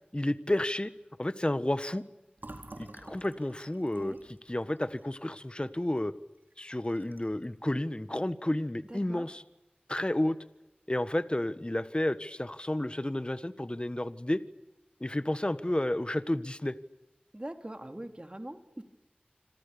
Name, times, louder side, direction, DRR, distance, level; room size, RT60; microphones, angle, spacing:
voice 1, 0.1-0.9 1.2-2.0 2.8-6.1 6.6-9.4 9.9-10.4 10.9-14.4 15.0-16.8, left 1 dB, 30° left, 13 dB, 1.4 m, -31 dB
Fill (with liquid), 2.4-6.0 6.4-6.5 6.8-7.4, right 2 dB, 70° right, 4.3 m, -50 dB
voice 2, 8.9-9.3 17.3-18.8, right 1 dB, 30° right, 6 dB, 3.1 m, -42 dB
27.0 x 26.5 x 7.0 m, 1.0 s
wide cardioid pair, 40°, 3 cm